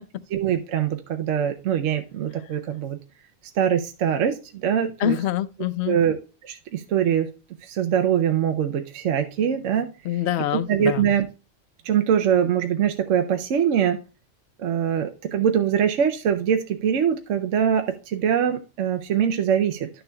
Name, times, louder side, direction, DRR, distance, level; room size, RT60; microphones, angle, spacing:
voice 1, 0.3-3.0 3.6-5.2 5.9-6.2 6.4-7.3 7.6-9.9 10.7-11.3 11.8-14.0 14.6-19.9, right 8 dB, 70° right, 1.0 m, -23 dB
voice 2, 5.0-6.0 10.0-11.1, left 12 dB, 65° left, 0.8 m, -25 dB
11.5 x 6.7 x 2.2 m
omnidirectional pair, 1.3 m